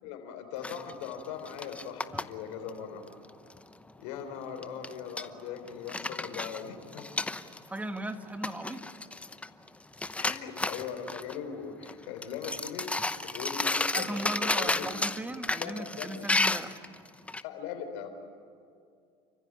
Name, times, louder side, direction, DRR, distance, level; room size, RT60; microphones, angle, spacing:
voice 1, 0.0-3.0 4.0-7.0 10.2-12.9 13.2-14.9 15.6-16.3 17.4-18.1, left 7 dB, 75° left, 6 dB, 4.0 m, -40 dB
sound 1, 0.6-2.2 2.7-2.8 3.1-3.6 4.6-5.3 5.7-7.8 8.1-8.2 8.4-9.7 9.9-11.4 11.8-11.9 12.2-17.4, left 2 dB, 10° left, 0.8 m, -32 dB
voice 2, 7.7-8.8 13.9-16.9, right 1 dB, 10° right, 7 dB, 1.9 m, -37 dB
29.5 x 15.0 x 10.0 m, 2.3 s
supercardioid pair, 95°, 14 cm